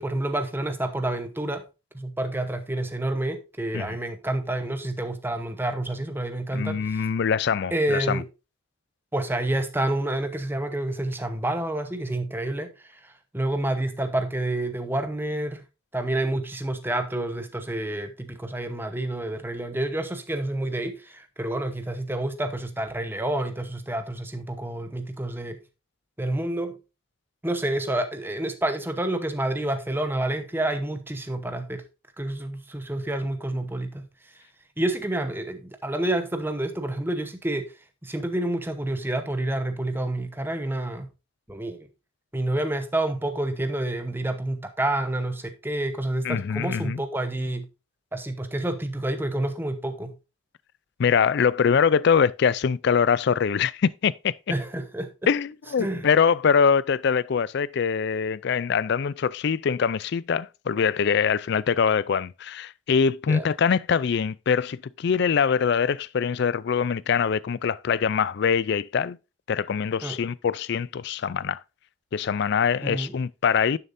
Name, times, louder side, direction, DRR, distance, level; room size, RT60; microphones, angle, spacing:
voice 1, 0.0-1.6 1.9-7.0 7.7-8.3 9.1-15.6 15.9-25.6 26.2-26.8 27.4-31.8 32.2-34.1 34.8-37.7 38.0-41.1 41.5-41.9 42.3-47.7 48.1-50.1 54.5-55.3 55.8-56.1 63.3-63.4 70.0-70.2 72.8-73.1, right 1 dB, 10° right, 0.9 m, -28 dB
voice 2, 6.5-8.2 46.2-47.0 51.0-54.3 55.3-69.2 69.5-71.6 72.1-73.8, left 6 dB, 55° left, 0.3 m, -23 dB
11.0 x 6.7 x 2.6 m
head